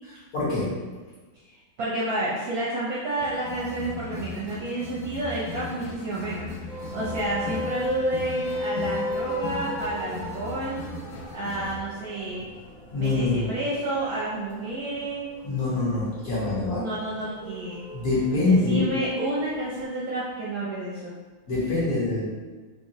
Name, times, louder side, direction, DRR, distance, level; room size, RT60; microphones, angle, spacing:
voice 1, 0.0-0.7 12.9-13.5 15.4-16.9 17.9-18.8 21.5-22.3, left 3 dB, 50° left, -9 dB, 1.5 m, -25 dB
voice 2, 1.4-6.5 6.9-10.9 11.3-12.5 13.0-15.3 16.7-17.8 18.4-21.2, right 2 dB, 65° right, -7 dB, 0.9 m, -30 dB
sound 1, 3.2-11.8, left 4 dB, 90° left, 0.7 m, -38 dB
sound 2, 6.7-19.9, equal, 30° left, 1.2 m, -36 dB
3.7 x 3.3 x 2.7 m, 1.3 s
omnidirectional pair, 2.1 m